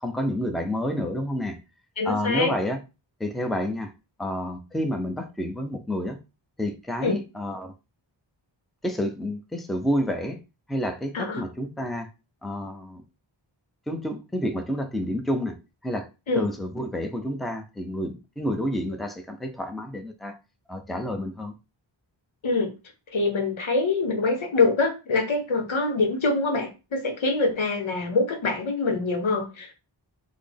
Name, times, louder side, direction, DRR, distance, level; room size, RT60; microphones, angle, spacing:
voice 1, 0.0-1.6 2.0-2.8 3.2-3.9 4.2-6.2 6.6-7.7 8.8-10.4 10.7-12.1 12.4-13.0 13.9-15.6 15.8-16.1 16.3-20.4 20.7-21.6, left 1 dB, ahead, 0.5 m, -29 dB
voice 2, 2.0-2.5 7.0-7.2 11.1-11.4 16.3-16.4 22.4-22.7 23.1-29.7, left 3 dB, 90° left, 0.8 m, -24 dB
3.8 x 2.1 x 3.4 m
wide cardioid pair, 40°, 46 cm